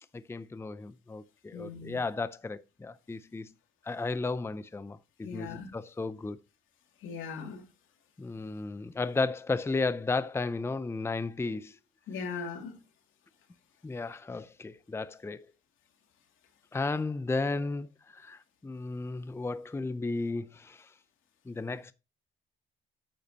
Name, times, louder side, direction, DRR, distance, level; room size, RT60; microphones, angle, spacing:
voice 1, 0.1-3.5 3.9-6.4 8.2-11.8 13.8-15.4 16.7-17.9 18.1-20.8 21.5-21.9, left 3 dB, 10° left, 0.5 m, -34 dB
voice 2, 1.5-2.0 5.2-5.7 7.0-7.6 12.1-12.7, left 5 dB, 85° left, 2.6 m, -39 dB
8.7 x 8.2 x 2.9 m
cardioid pair, 90°, 20 cm